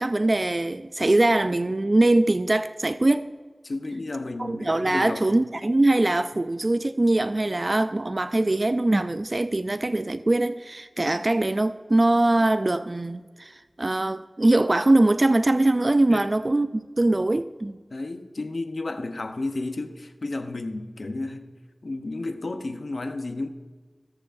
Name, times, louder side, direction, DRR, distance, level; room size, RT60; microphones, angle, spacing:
voice 1, 0.0-3.3 4.4-17.8, right 2 dB, 45° right, 0.3 m, -22 dB
voice 2, 3.6-5.2 16.1-16.3 17.9-21.5 21.8-23.5, left 2 dB, 70° left, 0.8 m, -32 dB
18.5 x 6.7 x 2.6 m
wide cardioid pair, 50°, 0 cm